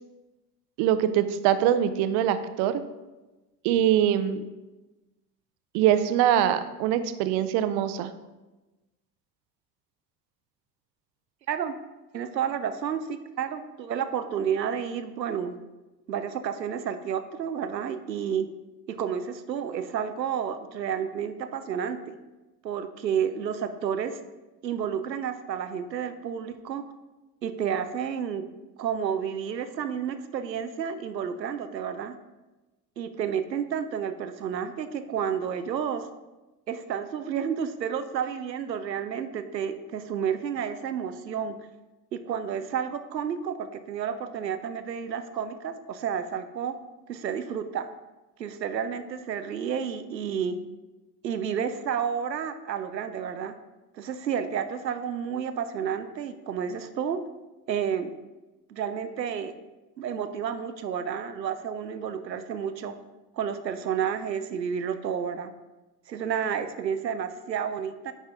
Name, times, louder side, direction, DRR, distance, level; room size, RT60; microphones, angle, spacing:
voice 1, 0.8-2.8 3.6-4.4 5.7-8.1, right 10 dB, 50° right, 11 dB, 0.7 m, -23 dB
voice 2, 11.5-11.8 12.1-15.6 16.1-18.5 18.9-22.1 22.6-24.2 24.6-26.9 27.4-28.4 28.8-32.1 33.0-36.1 36.7-41.6 42.1-46.8 47.1-47.9 48.4-50.6 51.2-53.5 53.9-57.2 57.7-58.1 58.7-59.5 60.0-62.9 63.3-65.5 66.1-68.1, right 8 dB, 90° right, 10 dB, 0.6 m, -31 dB
9.0 x 5.4 x 3.7 m, 1.1 s
figure-of-eight pair, 70°, 49 cm